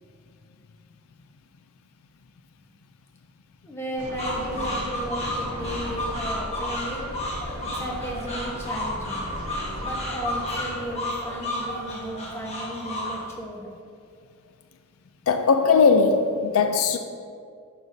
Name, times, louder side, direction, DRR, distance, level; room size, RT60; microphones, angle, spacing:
voice 1, 3.6-7.1 7.6-9.3 9.8-13.7, right 1 dB, 10° left, 1.0 m, -34 dB
sound 1, 4.0-12.1, right 1 dB, 90° right, 0.9 m, -38 dB
sound 2, 4.2-13.3, left 1 dB, 30° left, 1.3 m, -32 dB
voice 2, 15.3-17.0, left 5 dB, 70° left, 0.4 m, -19 dB
9.5 x 6.6 x 2.7 m
head